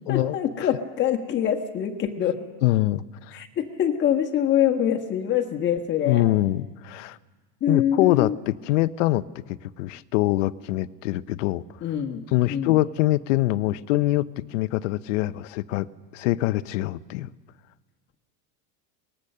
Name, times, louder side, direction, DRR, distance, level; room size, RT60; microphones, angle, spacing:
voice 1, 0.1-2.4 3.3-6.2 7.6-8.4 11.8-12.7, left 9 dB, 30° left, 4 dB, 1.4 m, -25 dB
voice 2, 2.6-3.4 6.1-7.2 7.7-9.2 9.8-11.6 12.3-15.9 16.1-17.3, left 16 dB, 80° left, 16 dB, 0.8 m, -24 dB
23.0 x 19.5 x 6.7 m, 1.3 s
supercardioid pair, 150°, 37 cm